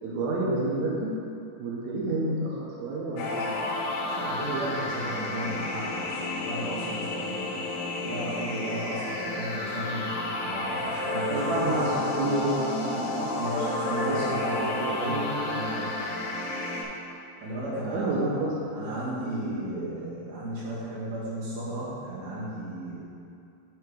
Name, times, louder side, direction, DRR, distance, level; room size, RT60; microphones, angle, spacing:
voice 1, 0.0-1.1 1.6-3.8 11.3-13.3 14.0-15.6 17.9-19.9, right 2 dB, 75° right, -4 dB, 1.7 m, -30 dB
sound 1, 3.2-16.8, left 2 dB, 80° left, 1.8 m, -31 dB
voice 2, 4.0-7.6 7.9-10.1 10.4-12.2 13.3-14.8 15.0-15.9 17.4-18.4 18.7-23.0, right 1 dB, 60° right, -9 dB, 3.1 m, -34 dB
9.5 x 3.5 x 4.8 m, 2.6 s
omnidirectional pair, 4.4 m